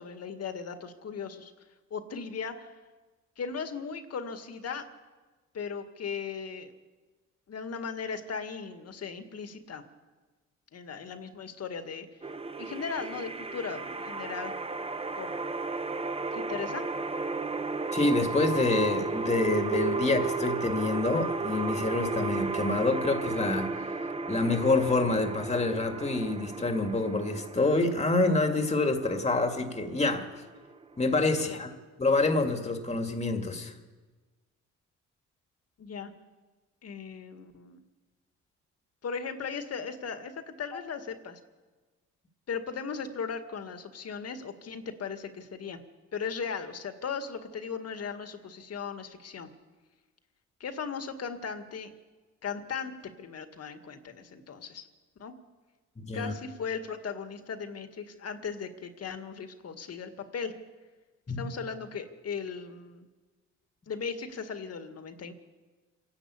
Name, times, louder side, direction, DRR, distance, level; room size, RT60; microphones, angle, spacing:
voice 1, 0.0-1.5 1.9-2.8 3.4-4.9 5.5-6.7 7.5-9.8 10.7-12.3 12.6-14.5 15.2-15.3 16.3-16.9 31.5-31.6 35.8-36.1 36.8-37.8 39.0-41.4 42.5-45.8 46.1-49.5 50.6-51.9 52.4-54.8 55.2-55.3 56.1-60.5 61.4-63.1 63.9-65.3, left 6 dB, 55° left, 7 dB, 2.1 m, -37 dB
sound 1, 12.2-31.2, right 3 dB, 20° right, 1.1 m, -34 dB
voice 2, 17.9-23.9 24.3-30.3 31.0-31.7 32.0-33.7 56.0-56.3 61.3-61.5, left 2 dB, 20° left, 5 dB, 2.1 m, -27 dB
27.5 x 11.0 x 8.5 m, 1.3 s
cardioid pair, 90°, 30 cm